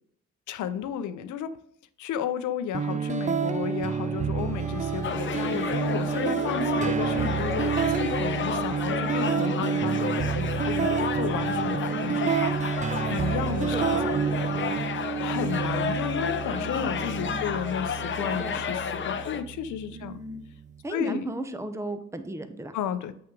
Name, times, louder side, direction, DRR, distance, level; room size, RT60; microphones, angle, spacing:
voice 1, 0.5-1.6 2.0-12.6 13.1-14.0 14.6-20.2 20.9-21.3 22.7-23.1, left 9 dB, 75° left, 12 dB, 0.7 m, -33 dB
sound 1, 2.7-20.7, right 7 dB, 25° right, 0.4 m, -29 dB
sound 2, 3.5-18.7, equal, 10° left, 1.8 m, -45 dB
sound 3, 5.0-19.4, left 7 dB, 40° left, 0.6 m, -32 dB
voice 2, 13.5-14.5 16.5-17.5 18.2-18.6 19.9-20.4 20.8-22.7, right 2 dB, 10° right, 8 dB, 0.8 m, -37 dB
8.1 x 5.8 x 3.7 m, 0.67 s
cardioid pair, 90°, 30 cm